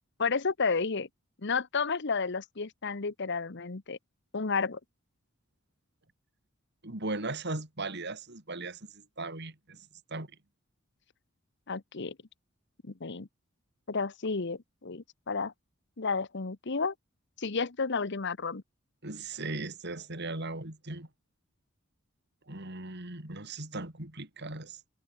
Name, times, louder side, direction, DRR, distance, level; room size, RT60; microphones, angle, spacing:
voice 1, 0.2-1.1 1.4-4.0 4.3-4.8 11.7-12.1 12.9-13.3 13.9-15.5 16.0-16.9 17.4-18.6, left 4 dB, 60° left, 1.1 m, -31 dB
voice 2, 6.8-9.9 10.1-10.3 19.0-21.1 22.5-24.8, right 2 dB, 55° right, 4.1 m, -38 dB
head